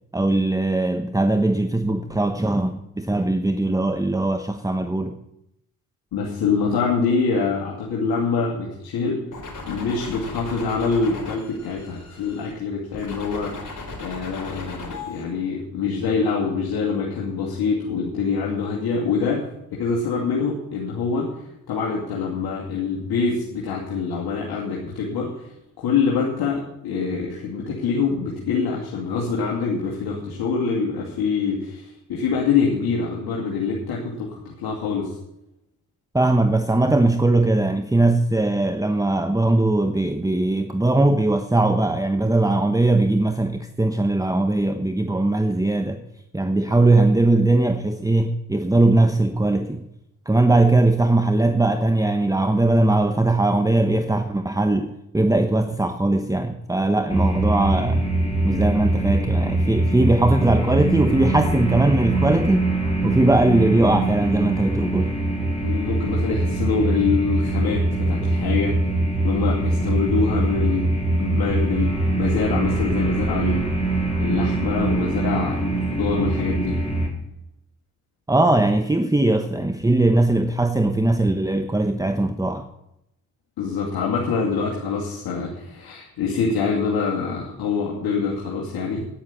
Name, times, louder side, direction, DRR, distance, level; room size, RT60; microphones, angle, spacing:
voice 1, 0.1-5.1 36.1-46.0 46.3-49.8 50.3-58.0 58.4-62.7 63.0-65.2 78.3-82.6, right 2 dB, 10° right, 7 dB, 1.1 m, -20 dB
voice 2, 6.1-9.2 9.7-19.4 19.7-25.5 25.8-35.2 65.6-68.8 69.2-71.9 72.2-73.6 74.2-76.8 83.6-89.1, left 5 dB, 75° left, -3 dB, 2.5 m, -25 dB
sound 1, 9.3-12.5 12.9-15.2, left 3 dB, 55° left, 4.7 m, -36 dB
sound 2, 57.1-77.1, right 2 dB, 15° left, 4.0 m, -23 dB
10.0 x 9.7 x 7.2 m, 0.83 s
supercardioid pair, 55°, 37 cm